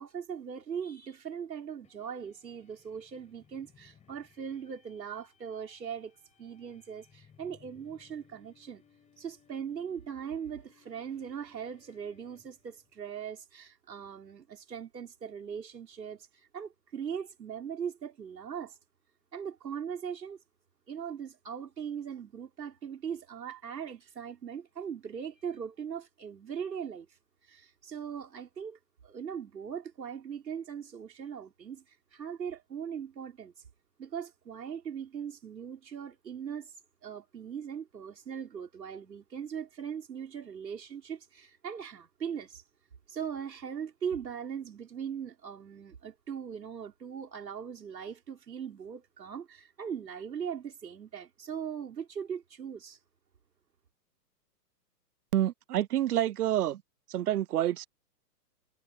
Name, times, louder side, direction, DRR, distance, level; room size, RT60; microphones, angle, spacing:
voice 1, 0.0-8.8 9.2-18.8 19.3-20.4 20.9-27.1 27.4-33.5 34.0-36.7 37.0-42.6 43.1-53.0, right 7 dB, 90° right, 5.1 m, -40 dB
sound 1, 1.8-12.9, left 8 dB, 15° left, 5.9 m, -64 dB
voice 2, 55.3-56.8 57.1-57.8, right 12 dB, 65° right, 0.9 m, -28 dB
hypercardioid pair, 145°, 49 cm